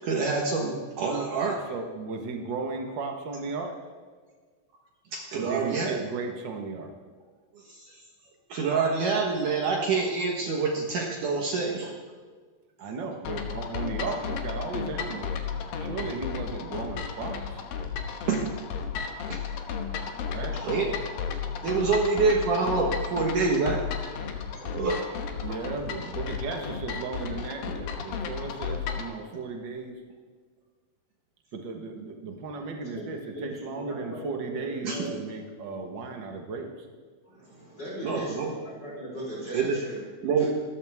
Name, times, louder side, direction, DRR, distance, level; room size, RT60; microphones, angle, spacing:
voice 1, 0.0-1.6 5.1-6.0 7.6-8.0 8.5-12.0 18.2-18.5 19.3-19.4 20.5-20.9 21.6-24.1 24.5-25.0 25.4-25.6 27.7-27.8 34.8-35.1 38.0-38.5 39.5-39.8 40.2-40.4, right 4 dB, 60° right, -1 dB, 2.6 m, -27 dB
voice 2, 1.7-3.8 5.3-6.9 12.8-15.4 15.8-17.6 20.3-20.6 25.4-30.0 31.5-36.9, right 4 dB, 85° right, 2 dB, 1.0 m, -35 dB
sound 1, 13.3-29.1, left 6 dB, 70° left, 2.7 m, -34 dB
voice 3, 32.8-34.5 34.8-35.1 37.2-40.5, equal, 25° left, -7 dB, 4.9 m, -39 dB
26.5 x 14.0 x 3.6 m, 1.5 s
omnidirectional pair, 4.6 m